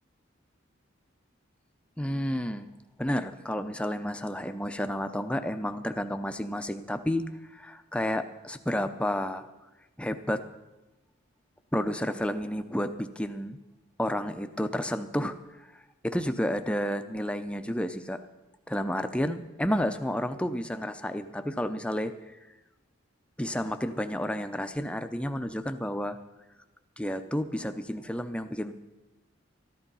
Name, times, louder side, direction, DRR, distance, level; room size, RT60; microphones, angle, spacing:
voice 1, 2.0-2.7 3.0-7.2 7.5-9.5 10.0-10.4 11.7-13.6 14.0-15.3 16.0-18.2 18.7-22.1 23.4-26.2 27.0-28.7, equal, 5° left, 8 dB, 0.6 m, -31 dB
13.5 x 11.5 x 5.5 m, 1.1 s
head